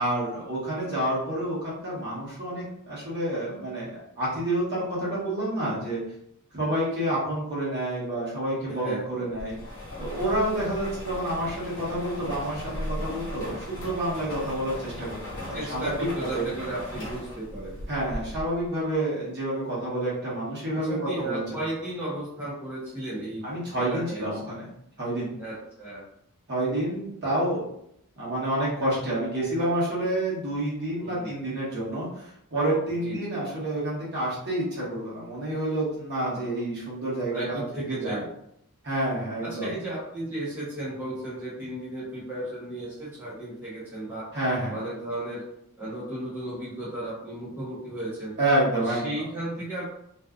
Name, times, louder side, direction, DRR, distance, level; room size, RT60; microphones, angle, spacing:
voice 1, 0.0-6.0 6.5-9.5 10.0-16.1 16.3-16.4 17.9-21.4 23.4-24.7 25.0-25.3 26.5-27.6 28.2-38.2 38.8-39.7 44.3-44.7 48.4-49.3, right 1 dB, 50° right, -7 dB, 1.1 m, -29 dB
voice 2, 8.7-9.3 15.5-17.8 20.7-23.4 23.7-24.3 25.4-26.0 31.0-31.4 33.0-33.4 36.3-36.5 37.3-38.2 39.4-44.3 44.7-45.4 45.8-48.3 48.7-49.8, right 1 dB, 10° right, -9 dB, 0.7 m, -34 dB
sound 1, 9.4-18.7, left 1 dB, 55° left, 0.8 m, -37 dB
2.6 x 2.3 x 2.3 m, 0.73 s
head